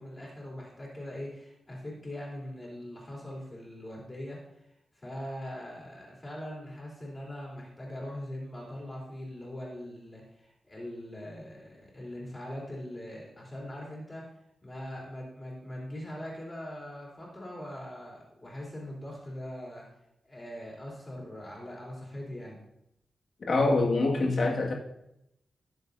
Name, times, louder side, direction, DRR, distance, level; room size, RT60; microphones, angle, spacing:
voice 1, 0.0-14.3 14.6-19.8 20.2-22.6, left 1 dB, 20° left, -4 dB, 3.5 m, -41 dB
voice 2, 23.5-24.7, left 2 dB, 55° left, -1 dB, 1.9 m, -25 dB
18.5 x 7.2 x 2.7 m, 0.83 s
wide cardioid pair, 145°, 0 cm